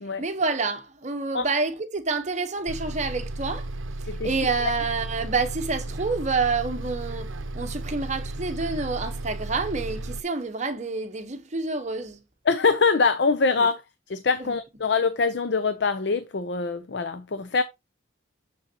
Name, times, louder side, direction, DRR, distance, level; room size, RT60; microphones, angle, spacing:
voice 1, 0.2-3.7 4.0-12.2 13.6-13.7 14.4-14.5, right 4 dB, 35° right, 0.8 m, -28 dB
Bus, 2.7-10.2, right 2 dB, 75° right, 0.7 m, -34 dB
voice 2, 12.5-13.8 14.1-17.6, left 4 dB, 60° left, 0.5 m, -24 dB
6.9 x 6.4 x 2.8 m
head